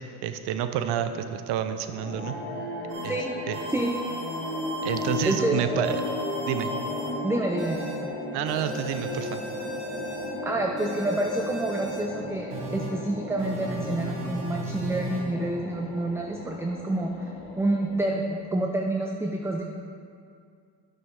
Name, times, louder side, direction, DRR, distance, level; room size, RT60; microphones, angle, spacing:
voice 1, 0.2-2.4 3.0-3.2 3.5-3.6 4.8-6.0 6.5-6.7 8.3-9.4, right 9 dB, 60° right, 10 dB, 0.7 m, -29 dB
sound 1, 1.8-18.4, left 2 dB, 70° left, 2.0 m, -35 dB
sound 2, 2.9-3.0 3.5-5.3 5.8-7.1 7.6-8.0 8.5-10.3 10.8-12.0 12.5-12.9 13.4-15.2, right 1 dB, 80° right, 1.7 m, -36 dB
voice 2, 5.2-5.6 7.2-7.8 10.4-17.1 17.6-19.6, right 2 dB, 5° right, 1 dB, 0.6 m, -28 dB
9.7 x 6.0 x 3.7 m, 2.3 s
hypercardioid pair, 60°, 44 cm